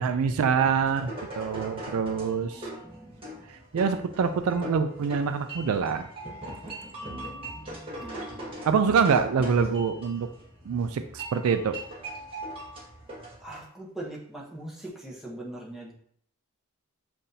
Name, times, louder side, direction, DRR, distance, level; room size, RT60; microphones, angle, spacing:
voice 1, 0.0-2.7 3.7-6.1 8.7-10.3 10.7-11.8, right 6 dB, 65° right, 9 dB, 0.3 m, -25 dB
sound 1, 0.7-13.6, right 1 dB, 25° right, 1.2 m, -40 dB
voice 2, 2.4-3.5 7.1-8.7 13.4-15.9, right 1 dB, ahead, -4 dB, 0.9 m, -42 dB
7.3 x 2.6 x 2.7 m, 0.63 s
head